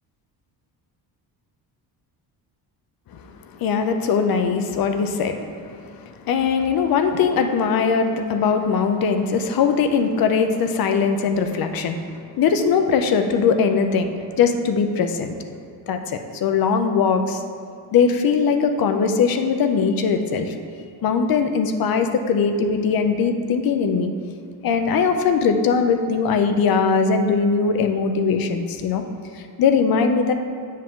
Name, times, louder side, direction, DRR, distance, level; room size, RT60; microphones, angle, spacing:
voice 1, 3.1-12.1 12.4-15.3 15.9-17.4 17.9-20.6 21.0-24.1 24.6-29.0 29.3-30.3, left 5 dB, 60° left, 7 dB, 0.7 m, -20 dB
7.4 x 6.0 x 3.7 m, 2.3 s
cardioid pair, 110°, 41 cm